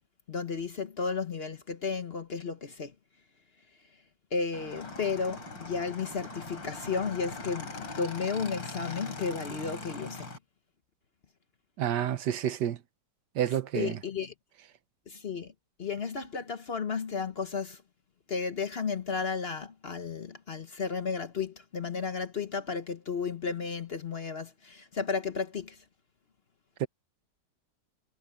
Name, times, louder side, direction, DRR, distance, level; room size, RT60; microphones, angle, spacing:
voice 1, 0.3-2.9 4.3-10.3 13.7-14.3 15.1-15.5 15.8-17.8 18.3-25.8, left 5 dB, 45° left, 0.9 m, -33 dB
Motorcycle / Engine, 4.5-10.4, left 3 dB, 85° left, 4.9 m, -41 dB
voice 2, 11.8-12.8 13.3-14.0 26.8-26.9, right 10 dB, 70° right, 1.5 m, -29 dB
omnidirectional pair, 2.0 m